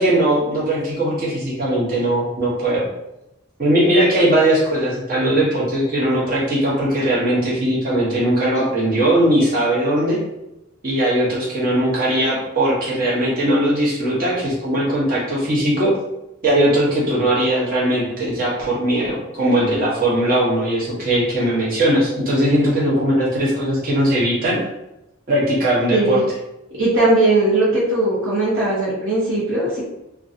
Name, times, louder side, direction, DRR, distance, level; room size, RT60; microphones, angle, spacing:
voice 1, 0.0-2.9 3.6-10.2 10.8-15.9 16.4-24.6 25.3-26.2, right 1 dB, 45° right, -6 dB, 0.9 m, -19 dB
voice 2, 25.9-26.2 26.7-29.8, right 2 dB, 70° right, -7 dB, 0.9 m, -18 dB
2.6 x 2.3 x 2.5 m, 0.89 s
head